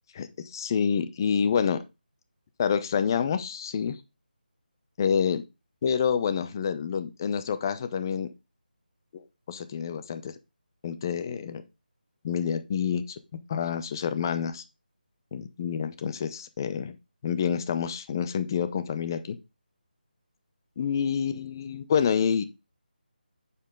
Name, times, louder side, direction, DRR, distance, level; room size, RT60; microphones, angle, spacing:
voice 1, 0.1-1.8 2.6-4.0 5.0-5.4 5.8-8.3 9.1-10.3 10.8-11.6 12.2-13.2 13.5-14.6 15.3-16.9 17.2-19.4 20.8-22.4, left 7 dB, 25° left, 12 dB, 0.8 m, -28 dB
8.6 x 7.0 x 3.8 m, 0.26 s
figure-of-eight pair, 170°, 5 cm